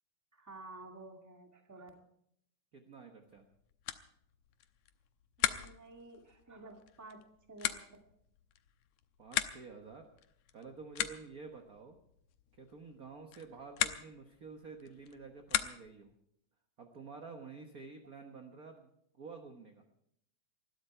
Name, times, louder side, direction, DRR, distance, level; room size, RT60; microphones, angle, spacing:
voice 1, 0.3-2.0 5.4-7.2 7.5-8.0, right 2 dB, 5° right, 3 dB, 1.6 m, -52 dB
voice 2, 2.7-3.4 9.2-10.1 10.5-12.0 12.5-16.1 16.8-19.8, right 4 dB, 45° right, 4 dB, 1.2 m, -50 dB
sound 1, 3.3-16.1, left 12 dB, 85° left, 2.2 m, -40 dB
20.5 x 14.0 x 4.5 m, 0.73 s
omnidirectional pair, 3.3 m